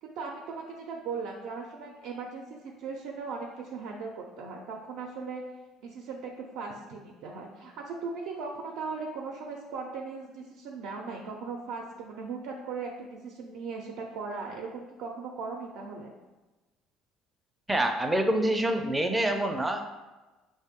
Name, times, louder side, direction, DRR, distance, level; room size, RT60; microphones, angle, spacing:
voice 1, 0.0-5.4 5.8-16.1, right 4 dB, 75° right, 0 dB, 0.5 m, -38 dB
voice 2, 17.7-19.8, right 1 dB, 10° right, 4 dB, 0.4 m, -26 dB
4.8 x 2.1 x 3.6 m, 1.2 s
cardioid pair, 125°, 0 cm